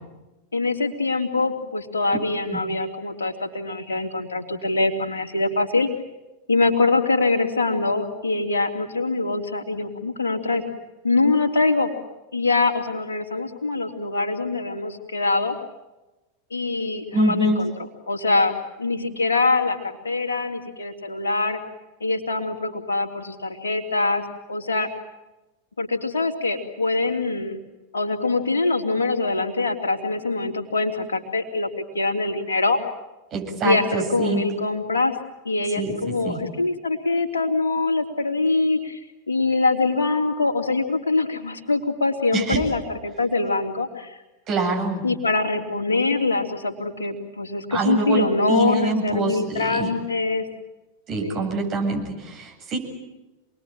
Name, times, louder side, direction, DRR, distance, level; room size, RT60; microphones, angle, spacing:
voice 1, 0.5-5.9 6.5-10.6 11.0-11.9 12.3-15.6 16.5-17.7 18.1-21.6 22.0-24.9 25.8-27.6 27.9-32.8 33.6-35.1 35.4-39.0 39.3-44.2 45.0-50.4 51.2-51.5, left 3 dB, 70° left, 4 dB, 3.3 m, -24 dB
voice 2, 17.1-17.6 33.3-34.4 35.8-36.4 42.3-42.6 44.5-45.0 47.7-49.9 51.1-52.8, right 3 dB, 35° right, 1 dB, 7.8 m, -25 dB
27.5 x 21.0 x 9.0 m, 1.0 s
figure-of-eight pair, 90°, 0 cm